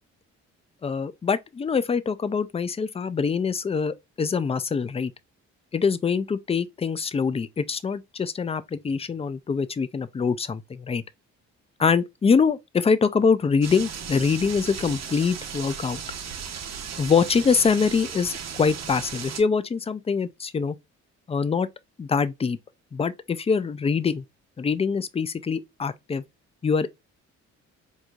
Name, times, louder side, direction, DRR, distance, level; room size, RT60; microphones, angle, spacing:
voice 1, 0.8-5.1 5.7-11.0 11.8-16.0 17.0-20.8 21.3-21.7 22.0-22.6 22.9-24.2 24.6-26.2 26.6-26.9, left 5 dB, 20° left, 0.4 m, -24 dB
sound 1, 13.6-19.4, right 7 dB, 60° right, 1.1 m, -36 dB
4.5 x 2.6 x 2.4 m
cardioid pair, 90°, 30 cm